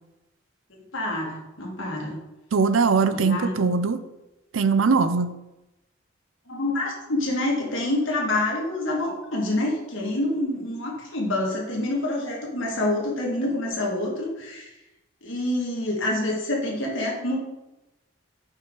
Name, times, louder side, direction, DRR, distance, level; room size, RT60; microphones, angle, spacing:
voice 1, 0.9-2.2 3.1-3.8 6.5-14.7 15.2-17.4, left 1 dB, 75° left, -2 dB, 1.9 m, -27 dB
voice 2, 2.5-4.0 4.5-5.3, right 5 dB, 85° right, 11 dB, 0.5 m, -21 dB
5.6 x 5.5 x 3.8 m, 0.96 s
head